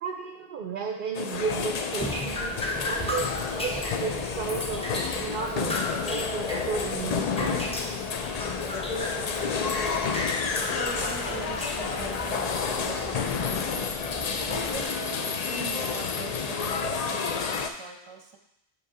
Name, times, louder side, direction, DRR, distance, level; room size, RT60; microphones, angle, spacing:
voice 1, 0.0-2.5 2.9-5.7 6.0-7.7, right 5 dB, 60° right, 3 dB, 0.7 m, -33 dB
sound 1, 1.1-17.7, left 5 dB, 50° left, 0.5 m, -30 dB
Drip, 2.0-14.8, left 1 dB, 5° left, 0.6 m, -36 dB
sound 2, 8.4-13.3, left 3 dB, 70° left, 0.9 m, -41 dB
voice 2, 10.7-18.4, right 4 dB, 30° right, 3 dB, 0.8 m, -42 dB
8.1 x 3.2 x 4.9 m, 0.81 s
omnidirectional pair, 1.0 m